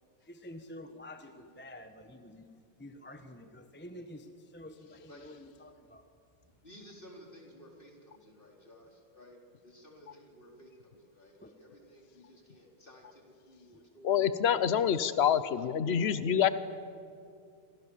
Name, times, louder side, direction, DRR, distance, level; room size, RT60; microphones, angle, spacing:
voice 1, 0.2-2.5 2.8-6.1 11.4-11.5 13.7-13.8 16.3-16.4, left 1 dB, 5° left, 7 dB, 0.9 m, -49 dB
voice 2, 6.6-9.4 9.6-14.1 14.5-14.8, equal, 25° left, 0 dB, 4.3 m, -55 dB
voice 3, 14.0-16.5, left 8 dB, 75° left, 13 dB, 0.5 m, -26 dB
28.0 x 26.5 x 7.3 m, 2.4 s
omnidirectional pair, 2.2 m